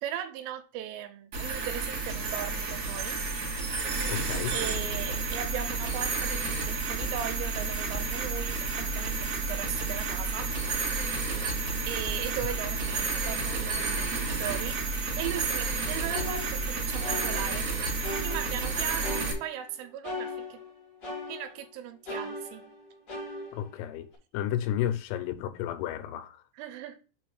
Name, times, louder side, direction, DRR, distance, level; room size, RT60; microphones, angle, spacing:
voice 1, 0.0-3.2 4.5-10.5 11.9-14.8 15.2-17.7 18.2-20.6 21.3-22.7 26.5-27.0, right 11 dB, 85° right, 3.3 m, -38 dB
sound 1, 1.3-19.3, right 3 dB, 50° right, 1.7 m, -31 dB
voice 2, 4.1-4.6 23.5-24.1 24.3-26.4, left 11 dB, 90° left, 3.2 m, -32 dB
sound 2, 16.1-17.7 18.0-19.7 20.0-21.7 22.0-24.1, left 2 dB, 45° left, 1.4 m, -39 dB
7.0 x 3.1 x 6.0 m
omnidirectional pair, 5.7 m